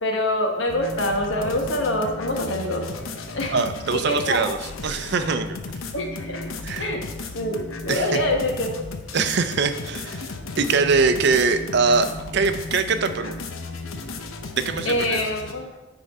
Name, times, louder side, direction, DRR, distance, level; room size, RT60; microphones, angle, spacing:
voice 1, 0.0-2.8 3.3-3.6 3.9-4.5 5.9-6.5 6.8-7.0 7.3-8.9 14.8-15.7, left 1 dB, 70° left, 2 dB, 1.2 m, -25 dB
sound 1, 0.7-15.5, left 3 dB, 85° left, 0.7 m, -35 dB
voice 2, 3.5-4.6 4.8-5.6 6.6-6.9 7.9-8.2 9.1-10.3 10.6-13.3 14.6-15.2, right 4 dB, 55° right, 10 dB, 0.5 m, -22 dB
10.0 x 3.8 x 4.2 m, 1.1 s
head